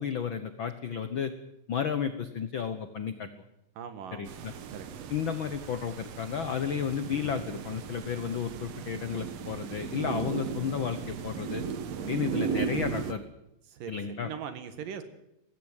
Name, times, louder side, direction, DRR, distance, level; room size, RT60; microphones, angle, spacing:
voice 1, 0.0-1.3 1.7-3.3 4.1-4.5 5.1-11.6 12.0-13.2 13.9-14.3, left 7 dB, 75° left, 10 dB, 1.1 m, -32 dB
voice 2, 3.8-5.1 13.7-13.9 14.2-15.0, right 7 dB, 75° right, 10 dB, 3.4 m, -41 dB
sound 1, 4.3-13.1, right 6 dB, 60° right, 2.1 m, -36 dB
20.0 x 16.0 x 9.1 m, 0.85 s
omnidirectional pair, 3.9 m